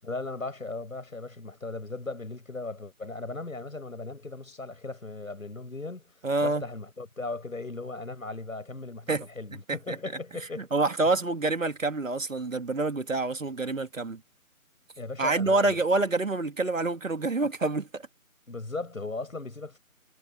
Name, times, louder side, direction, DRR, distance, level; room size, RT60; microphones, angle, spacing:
voice 1, 0.0-6.0 6.4-10.7 15.0-15.7 18.5-19.8, left 3 dB, 70° left, 8.0 m, -37 dB
voice 2, 6.2-6.6 9.1-9.3 9.7-10.0 10.6-14.2 15.2-18.1, right 3 dB, 65° right, 2.3 m, -27 dB
figure-of-eight pair, 165°, 43 cm